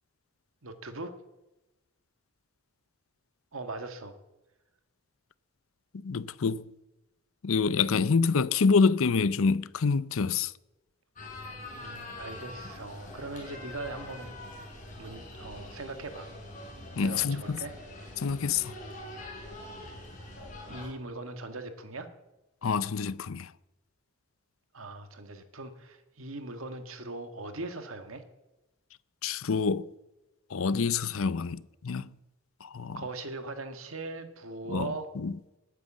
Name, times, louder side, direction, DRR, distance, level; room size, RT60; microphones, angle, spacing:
voice 1, 0.6-1.1 3.5-4.2 11.8-14.5 15.0-16.3 17.0-17.7 20.7-22.1 24.7-28.2 33.0-35.1, right 2 dB, 75° right, 1.8 m, -40 dB
voice 2, 5.9-6.7 7.4-10.5 17.0-17.6 18.2-18.7 22.6-23.5 29.2-29.9 30.5-32.1 32.6-33.0 34.7-35.6, left 5 dB, 75° left, 0.6 m, -27 dB
sound 1, 11.2-20.9, left 1 dB, 35° left, 5.5 m, -44 dB
19.5 x 9.4 x 7.5 m
head